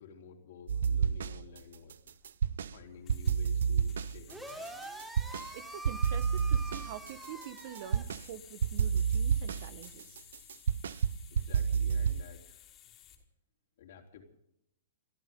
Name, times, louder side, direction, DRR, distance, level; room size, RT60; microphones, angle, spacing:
voice 1, 0.0-2.0 2.7-4.7 11.3-12.9 13.8-14.2, left 6 dB, 60° left, 3 dB, 3.6 m, -52 dB
sound 1, 0.7-1.6 1.9-2.8 3.1-5.5 5.8-8.3 8.6-12.2, right 7 dB, 70° right, 0.5 m, -30 dB
sound 2, 0.9-13.2, left 11 dB, 30° left, 3.4 m, -57 dB
sound 3, 4.3-8.0, right 1 dB, 10° right, 3.7 m, -45 dB
voice 2, 5.5-10.2, right 11 dB, 55° right, 15 dB, 1.3 m, -46 dB
29.0 x 12.5 x 3.9 m, 0.79 s
hypercardioid pair, 115°, 0 cm